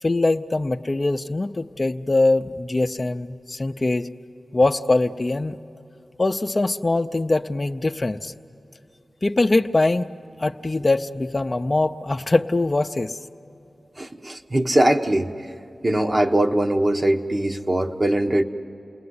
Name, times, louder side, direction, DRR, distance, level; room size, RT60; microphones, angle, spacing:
voice 1, 0.0-4.1 4.5-5.6 6.2-8.3 9.2-10.1 10.4-13.2, left 2 dB, 40° left, 8 dB, 0.6 m, -22 dB
voice 2, 14.0-15.3 15.8-18.4, right 1 dB, 35° right, 4 dB, 1.3 m, -21 dB
29.5 x 19.5 x 9.7 m, 2.9 s
wide cardioid pair, 60°, 0 cm